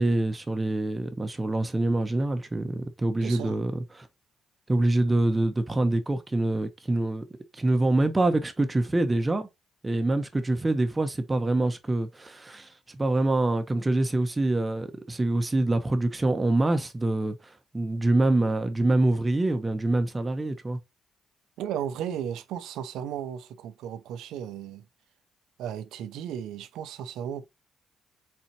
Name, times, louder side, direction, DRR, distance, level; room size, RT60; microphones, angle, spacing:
voice 1, 0.0-4.1 4.7-7.2 7.5-9.5 9.8-20.8, right 2 dB, 20° right, 0.9 m, -25 dB
voice 2, 3.2-3.6 21.6-24.9 25.6-27.5, right 9 dB, 85° right, 0.6 m, -35 dB
4.3 x 4.0 x 2.8 m
cardioid pair, 90°, 0 cm